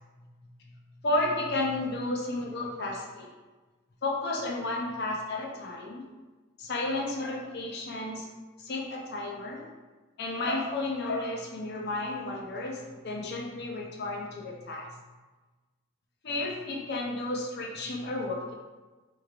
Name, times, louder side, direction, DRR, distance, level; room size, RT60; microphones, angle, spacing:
voice 1, 1.0-3.3 4.0-6.0 6.6-8.3 8.6-9.7 10.2-14.9 16.2-18.5, left 2 dB, 50° left, -1 dB, 0.5 m, -32 dB
3.4 x 3.1 x 2.4 m, 1.2 s
head